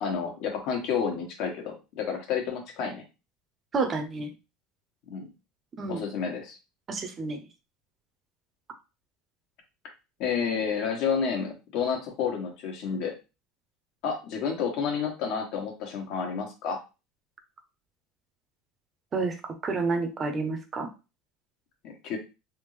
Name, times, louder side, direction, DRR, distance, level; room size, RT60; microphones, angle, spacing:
voice 1, 0.0-3.0 5.1-5.2 5.9-6.6 10.2-13.1 14.0-16.8 21.8-22.2, left 6 dB, 60° left, 2 dB, 1.2 m, -30 dB
voice 2, 3.7-4.3 5.8-6.0 6.9-7.4 19.1-20.9, right 3 dB, 25° right, 6 dB, 0.7 m, -29 dB
3.5 x 2.4 x 3.2 m, 0.29 s
supercardioid pair, 130°, 0 cm